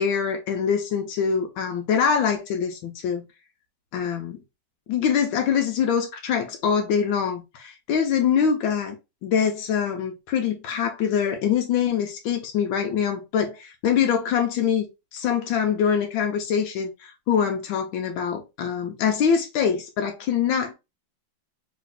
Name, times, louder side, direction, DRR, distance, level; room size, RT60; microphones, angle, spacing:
voice 1, 0.0-3.2 3.9-4.4 4.9-9.0 9.2-14.8 15.1-20.7, left 7 dB, 85° left, 1.5 m, -24 dB
3.3 x 3.1 x 3.8 m
omnidirectional pair, 2.1 m